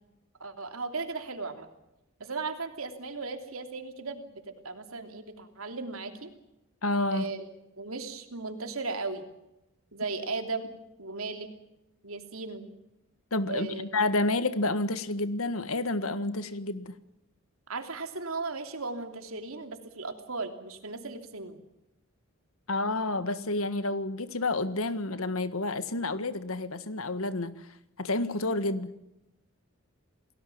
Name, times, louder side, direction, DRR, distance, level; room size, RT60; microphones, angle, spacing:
voice 1, 0.4-1.7 2.2-6.3 7.1-7.5 7.8-9.3 9.9-10.7 11.0-11.5 12.0-12.7 13.5-13.9 17.7-21.6, right 3 dB, 80° right, 3.0 m, -36 dB
voice 2, 6.8-7.3 13.3-16.9 22.7-27.6 28.0-29.0, left 2 dB, 80° left, 1.7 m, -29 dB
28.5 x 18.5 x 7.3 m
head